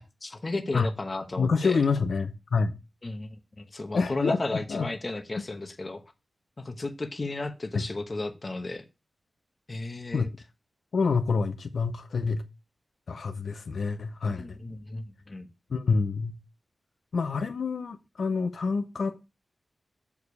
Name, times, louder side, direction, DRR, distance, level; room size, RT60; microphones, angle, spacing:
voice 1, 0.2-1.8 3.0-6.0 6.6-8.8 9.7-10.3 14.3-15.5, left 2 dB, 30° left, 0.9 m, -34 dB
voice 2, 1.4-2.8 3.9-4.9 7.7-7.8 10.1-10.3 10.9-12.4 13.1-14.6 15.7-16.4 17.1-19.2, left 4 dB, 70° left, 0.6 m, -27 dB
6.6 x 4.8 x 5.3 m
wide cardioid pair, 150°, 0 cm